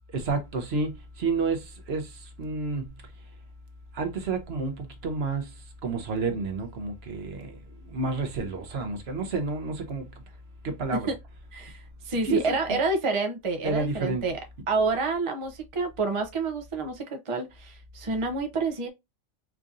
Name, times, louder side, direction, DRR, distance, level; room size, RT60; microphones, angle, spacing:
voice 1, 0.1-2.9 3.9-5.6 5.8-7.6 7.8-10.1 10.6-11.1 12.2-12.6 13.6-14.2, right 3 dB, 60° right, 1.0 m, -30 dB
voice 2, 11.5-14.4 14.7-18.9, right 3 dB, 40° right, 0.4 m, -28 dB
4.6 x 2.6 x 2.4 m
omnidirectional pair, 1.3 m